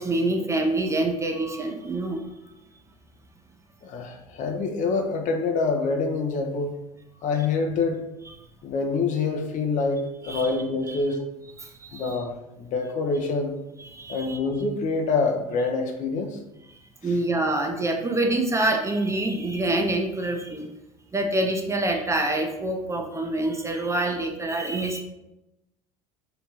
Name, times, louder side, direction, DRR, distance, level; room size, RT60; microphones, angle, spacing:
voice 1, 0.0-2.3 10.2-10.5 10.9-11.0 11.6-12.2 13.8-14.4 16.7-20.7 21.1-25.0, right 2 dB, 15° right, 2 dB, 0.4 m, -26 dB
voice 2, 3.8-6.8 7.2-8.0 8.6-11.2 11.9-13.6 14.1-16.4 17.0-17.1, left 4 dB, 45° left, 4 dB, 0.5 m, -26 dB
2.7 x 2.2 x 2.9 m, 0.92 s
hypercardioid pair, 80°, 18 cm